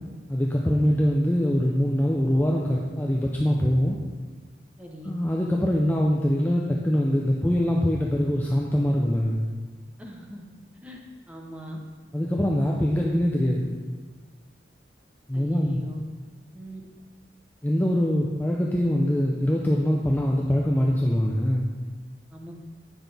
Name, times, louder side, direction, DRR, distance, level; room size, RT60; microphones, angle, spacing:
voice 1, 0.3-4.0 5.0-9.4 12.1-13.7 15.3-15.8 17.6-21.7, equal, 10° left, -2 dB, 0.5 m, -23 dB
voice 2, 4.8-5.1 10.0-10.4 10.8-11.0 11.3-11.8 15.3-16.0 16.5-16.8 22.3-22.5, equal, 10° right, -1 dB, 0.9 m, -40 dB
8.9 x 5.9 x 3.4 m, 1.4 s
head